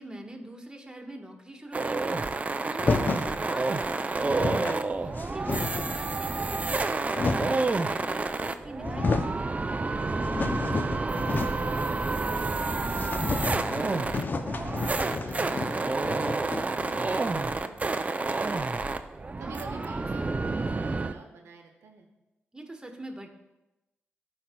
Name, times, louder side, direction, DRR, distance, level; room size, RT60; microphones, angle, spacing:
voice 1, 0.0-9.5 15.0-15.2 19.4-19.7 22.5-23.3, right 1 dB, 15° right, 1 dB, 1.4 m, -43 dB
sound 1, 1.7-21.1, right 3 dB, 35° right, 0.4 m, -29 dB
sound 2, 2.8-3.3 4.0-4.1 4.2-4.8 5.2-6.0 6.7-7.7 8.4-8.5 8.8-9.4 9.8-11.8 12.0-12.1 12.4-12.5 12.9-17.4, left 3 dB, 45° left, 0.5 m, -31 dB
voice 2, 10.3-18.9 19.4-22.1, right 4 dB, 85° right, 4 dB, 0.8 m, -48 dB
11.5 x 4.3 x 2.2 m, 0.96 s
cardioid pair, 50°, 4 cm